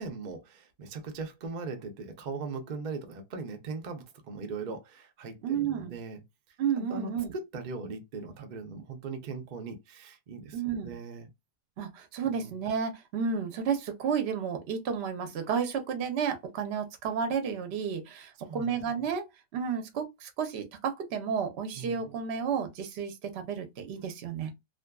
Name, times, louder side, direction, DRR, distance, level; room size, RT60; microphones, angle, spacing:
voice 1, 0.0-6.2 6.7-11.3 12.2-12.5 18.1-18.8 21.8-22.0, right 4 dB, 75° right, 0.4 m, -40 dB
voice 2, 5.4-6.0 6.6-7.3 10.5-11.0 11.8-19.2 19.5-24.5, right 7 dB, 55° right, 0.7 m, -32 dB
2.5 x 2.5 x 2.2 m
omnidirectional pair, 1.7 m